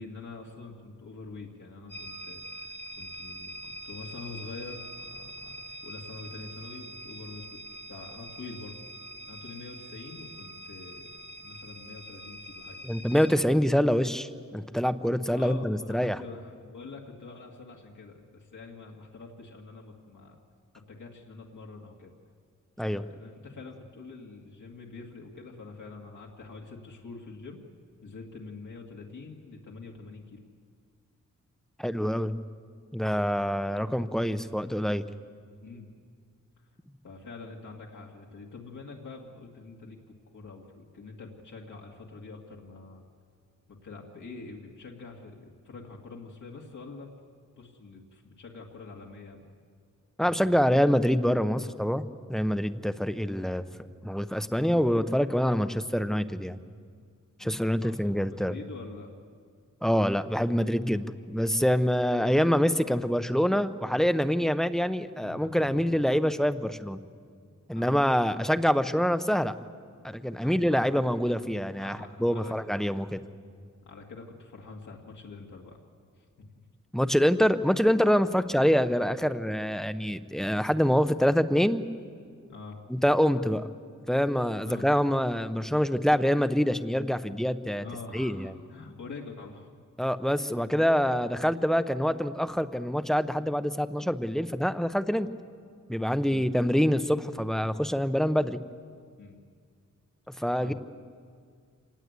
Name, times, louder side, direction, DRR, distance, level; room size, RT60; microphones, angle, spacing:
voice 1, 0.0-7.6 7.9-8.8 9.3-13.0 15.3-20.4 20.9-22.1 22.8-27.6 28.0-30.4 35.6-35.9 37.0-40.0 40.3-43.0 43.7-47.1 47.6-49.5 50.4-50.7 57.4-59.1 65.2-65.7 67.7-68.0 70.4-70.9 71.8-72.5 73.8-75.8 76.1-76.5 78.2-78.5 82.5-82.8 84.6-84.9 87.8-89.7 96.3-96.5 99.2-99.4 100.6-100.7, left 3 dB, 75° left, -1 dB, 2.3 m, -45 dB
sound 1, 1.9-13.3, equal, 35° left, 1.2 m, -44 dB
voice 2, 12.8-16.2 22.8-23.0 31.8-32.4 32.9-35.0 50.2-52.0 52.3-53.6 54.0-56.6 57.4-58.5 59.8-67.0 67.7-69.5 70.0-73.2 76.9-81.8 82.9-83.7 84.1-87.8 88.1-88.5 90.0-95.3 95.9-98.6 100.4-100.7, equal, ahead, 11 dB, 0.7 m, -25 dB
27.0 x 19.0 x 8.2 m, 2.1 s
wide cardioid pair, 155°, 31 cm